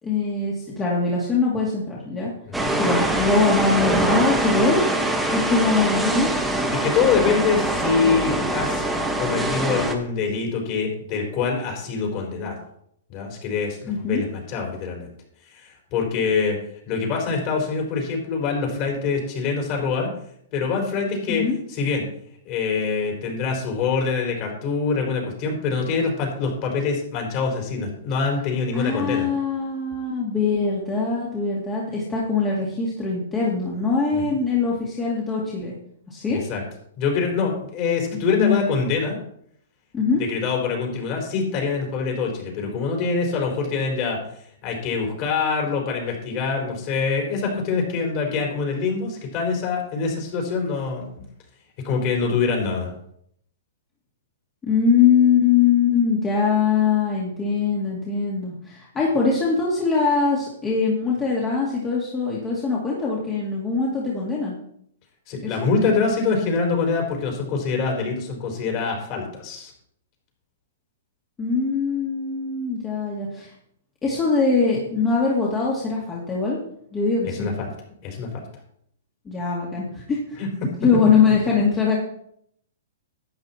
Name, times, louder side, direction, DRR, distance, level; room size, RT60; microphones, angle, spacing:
voice 1, 0.0-2.3 2.8-4.9 5.3-6.3 13.9-14.2 21.3-21.6 28.7-35.7 36.1-36.4 38.1-38.6 39.9-40.2 54.6-64.6 65.4-65.7 71.4-73.5 74.0-76.6 76.9-77.5 79.3-80.4 80.8-82.0, left 5 dB, 15° left, -4 dB, 2.3 m, -22 dB
sound 1, 2.5-9.9, right 1 dB, 5° right, 1.4 m, -23 dB
voice 2, 6.7-8.8 9.2-12.6 13.1-15.1 15.5-16.6 16.9-20.1 20.5-21.4 21.7-22.0 22.4-29.3 34.1-34.2 36.3-36.6 37.0-39.2 40.2-44.2 44.6-51.1 51.8-52.9 65.3-69.7 77.2-77.7 78.0-78.4 80.4-80.5, left 5 dB, 35° left, 0 dB, 4.7 m, -24 dB
12.0 x 9.0 x 4.5 m, 0.69 s
hypercardioid pair, 145°, 0 cm